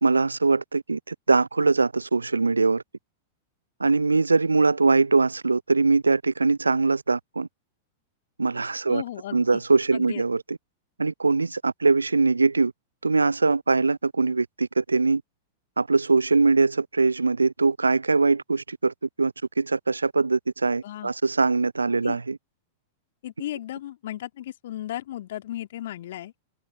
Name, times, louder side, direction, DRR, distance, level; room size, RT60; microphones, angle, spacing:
voice 1, 0.0-2.8 3.8-7.5 8.4-9.0 9.3-10.6 11.0-12.7 13.0-15.2 15.8-22.4, right 3 dB, 80° right, 0.6 m, -22 dB
voice 2, 8.9-9.6 9.9-10.2 20.8-21.1 22.0-22.2 23.2-26.3, left 13 dB, 60° left, 2.6 m, -35 dB
open air
figure-of-eight pair, 95°, 0 cm